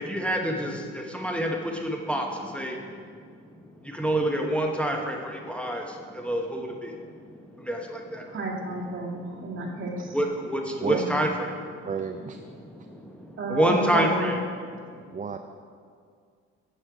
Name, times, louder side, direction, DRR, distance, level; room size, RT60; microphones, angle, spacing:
voice 1, 0.1-0.7 1.1-1.5 1.8-2.2 2.5-2.7 4.0-5.2 5.5-5.8 6.3-6.7 7.7-7.8 10.1-11.3 13.5-14.4, right 1 dB, 5° left, 1 dB, 1.0 m, -25 dB
voice 2, 8.3-10.2 10.9-11.1 13.4-14.3, right 2 dB, 40° right, -2 dB, 2.0 m, -32 dB
voice 3, 10.8-11.2 11.8-12.4 15.1-15.4, right 6 dB, 25° right, 7 dB, 0.4 m, -32 dB
7.8 x 7.6 x 4.8 m, 2.1 s
supercardioid pair, 70°, 31 cm